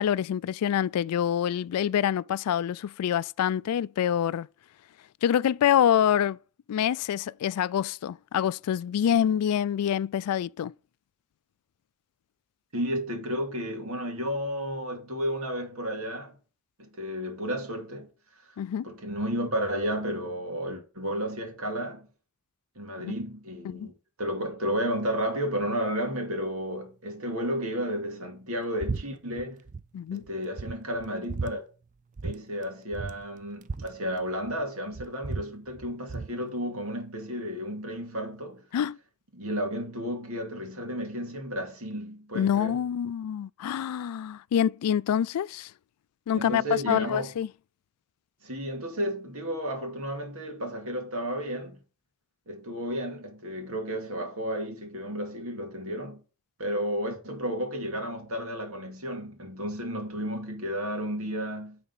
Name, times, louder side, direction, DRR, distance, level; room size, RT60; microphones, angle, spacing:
voice 1, 0.0-4.5 5.2-6.4 6.7-10.7 18.6-18.9 23.0-23.1 23.6-23.9 29.9-30.3 38.7-39.0 42.3-45.7 46.3-47.5, left 9 dB, 90° left, 0.3 m, -26 dB
voice 2, 12.7-16.4 16.8-18.1 18.5-18.6 18.8-22.1 22.8-23.9 24.2-29.6 30.1-31.6 32.2-38.7 39.3-42.7 46.4-47.3 48.4-51.8 52.5-56.2 56.6-61.8, equal, 75° right, 2.2 m, -32 dB
sound 1, 28.8-29.0 29.3-29.8 30.2-30.3 30.6-31.5 32.2-32.4 32.6-32.7 32.9-34.6 34.9-36.3, right 4 dB, 35° right, 0.4 m, -35 dB
9.7 x 4.2 x 5.5 m
head